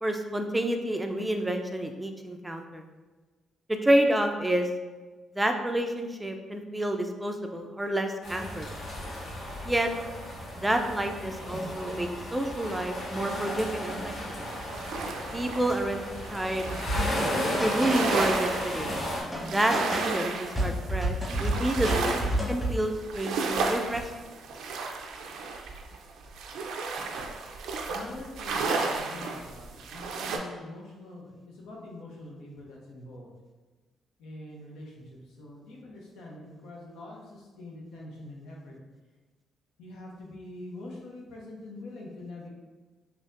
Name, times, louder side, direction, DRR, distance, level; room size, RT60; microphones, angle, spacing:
voice 1, 0.0-2.8 3.7-4.7 5.3-8.7 9.6-9.9 10.5-14.1 14.4-14.5 15.3-16.7 17.6-18.9 19.4-22.1 22.5-24.1, right 1 dB, 10° right, 4 dB, 0.3 m, -29 dB
sound 1, 8.2-19.2, equal, 65° left, 1.2 m, -35 dB
sound 2, 14.4-17.2 17.6-30.4, right 4 dB, 80° right, 0.4 m, -34 dB
sound 3, 16.7-18.5 18.9-20.2 20.6-22.8, right 1 dB, 20° left, 1.2 m, -30 dB
voice 2, 27.9-33.3 34.2-38.8 39.8-42.5, left 2 dB, 90° left, -2 dB, 0.8 m, -44 dB
4.0 x 2.8 x 2.5 m, 1.3 s
cardioid pair, 90°, 0 cm